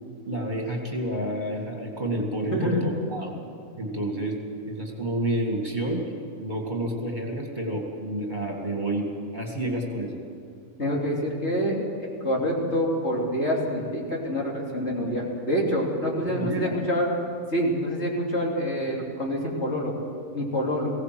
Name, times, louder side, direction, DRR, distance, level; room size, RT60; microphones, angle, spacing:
voice 1, 0.3-3.3 3.8-4.4 4.7-6.1 6.4-9.1 9.3-10.2 16.3-16.8, right 1 dB, 35° right, 0 dB, 2.4 m, -29 dB
voice 2, 2.4-2.9 10.8-11.8 12.2-17.1 17.5-19.9 20.3-20.9, equal, 50° left, -3 dB, 3.6 m, -26 dB
20.5 x 17.0 x 7.8 m, 2.3 s
omnidirectional pair, 1.5 m